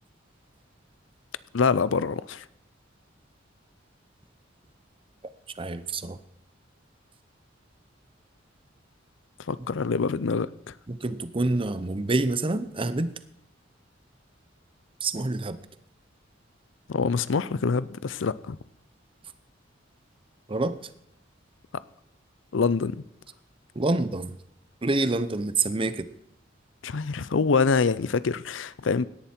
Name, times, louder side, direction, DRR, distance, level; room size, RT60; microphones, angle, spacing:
voice 1, 1.5-2.4 9.5-10.5 16.9-18.6 22.5-23.0 26.8-29.1, left 5 dB, 75° left, 0.5 m, -25 dB
voice 2, 5.6-6.2 10.9-13.1 15.0-15.6 20.5-20.8 23.8-24.3 24.8-26.1, right 2 dB, 30° right, 0.7 m, -27 dB
17.0 x 10.5 x 4.4 m
head